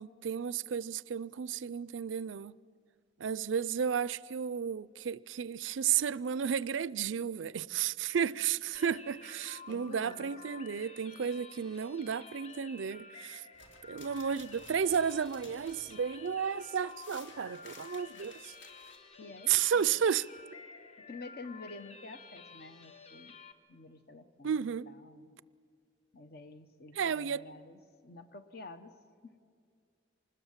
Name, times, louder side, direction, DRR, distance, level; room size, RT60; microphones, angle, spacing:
voice 1, 0.0-2.6 3.2-13.4 13.9-18.5 19.5-20.3 24.4-24.9 26.9-27.4, right 7 dB, 90° right, 0.5 m, -33 dB
sound 1, 8.7-23.5, left 4 dB, 35° left, 1.2 m, -52 dB
voice 2, 9.7-10.3 10.8-11.0 19.2-20.0 21.0-23.4 23.7-25.3 26.1-28.9 29.2-29.4, left 3 dB, 55° left, 1.2 m, -49 dB
sound 2, 13.5-19.0, left 3 dB, 75° left, 3.2 m, -55 dB
25.5 x 20.0 x 7.4 m
head